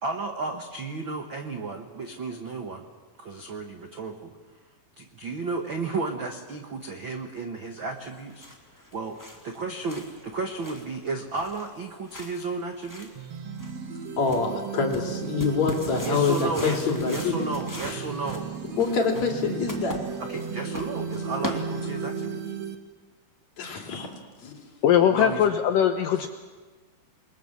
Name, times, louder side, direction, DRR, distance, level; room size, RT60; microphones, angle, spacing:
voice 1, 0.0-2.9 3.2-4.3 5.0-8.5 8.7-9.2 9.4-13.1 16.0-18.5 20.2-22.5 25.1-25.4, right 3 dB, 80° right, 4 dB, 1.1 m, -33 dB
sound 1, 8.0-22.2, left 1 dB, 5° left, 1.7 m, -41 dB
sound 2, 13.1-22.7, right 6 dB, 50° right, 2.2 m, -35 dB
voice 2, 14.2-17.3 17.8-18.0 18.8-20.0 23.6-24.1 24.4-24.7, left 5 dB, 45° left, 2 dB, 3.9 m, -26 dB
voice 3, 24.8-26.3, left 9 dB, 70° left, 7 dB, 2.2 m, -20 dB
28.5 x 21.5 x 7.4 m, 1.4 s
omnidirectional pair, 4.7 m